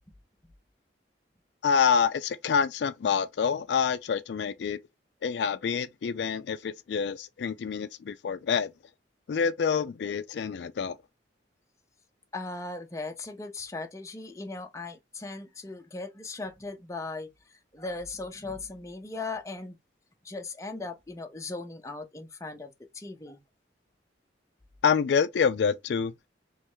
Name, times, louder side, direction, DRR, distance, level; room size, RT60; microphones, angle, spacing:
voice 1, 1.6-4.8 5.2-8.7 9.3-11.0 24.8-26.3, left 6 dB, 70° left, 0.3 m, -27 dB
voice 2, 12.3-19.8 20.2-23.4, left 3 dB, 15° left, 0.6 m, -38 dB
3.4 x 3.1 x 3.0 m
head